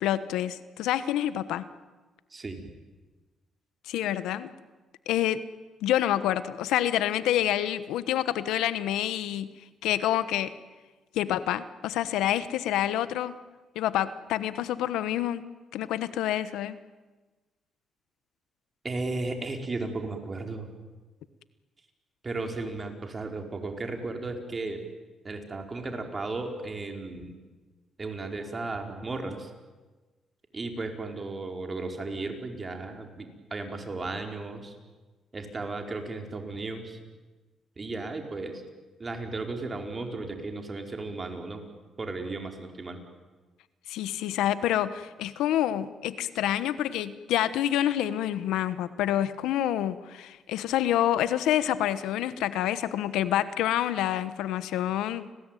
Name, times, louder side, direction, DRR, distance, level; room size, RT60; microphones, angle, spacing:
voice 1, 0.0-1.7 3.9-4.5 5.1-5.4 5.8-9.5 9.8-10.5 11.1-13.4 13.7-15.4 15.7-16.8 43.9-55.3, left 12 dB, 90° left, 14 dB, 1.2 m, -27 dB
voice 2, 2.3-2.6 18.8-20.7 22.2-24.8 25.2-27.3 28.0-29.5 30.5-34.7 35.3-37.0 37.8-38.6 39.0-41.6 42.0-43.0, right 3 dB, 30° right, 4 dB, 4.8 m, -35 dB
30.0 x 20.5 x 9.3 m, 1.2 s
cardioid pair, 90°, 0 cm